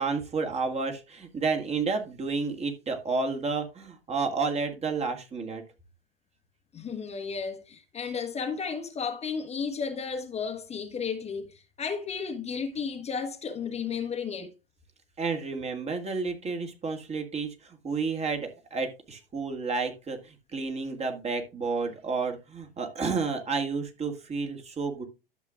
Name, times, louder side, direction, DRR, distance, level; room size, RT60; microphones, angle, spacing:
voice 1, 0.0-5.6 15.2-25.0, right 4 dB, 20° right, 1.8 m, -31 dB
voice 2, 6.7-14.5, left 6 dB, 20° left, 1.3 m, -33 dB
12.0 x 7.3 x 2.4 m
figure-of-eight pair, 85°, 29 cm